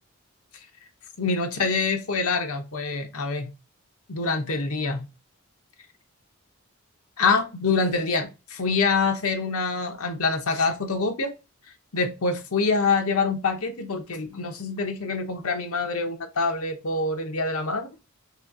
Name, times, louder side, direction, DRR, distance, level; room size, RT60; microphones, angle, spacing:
voice 1, 1.2-3.5 4.1-5.1 7.2-11.3 11.9-17.9, left 4 dB, 75° left, 0.8 m, -25 dB
3.0 x 3.0 x 3.6 m
head